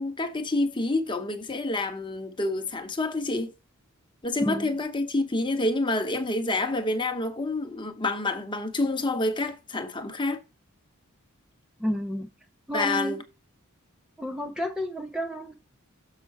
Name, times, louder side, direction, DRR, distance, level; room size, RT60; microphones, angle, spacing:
voice 1, 0.0-3.5 4.2-10.4 12.7-13.2, left 2 dB, 20° left, 1.0 m, -28 dB
voice 2, 11.8-12.3 12.7-13.2 14.2-15.5, equal, 5° right, 0.7 m, -30 dB
6.8 x 5.8 x 4.2 m
head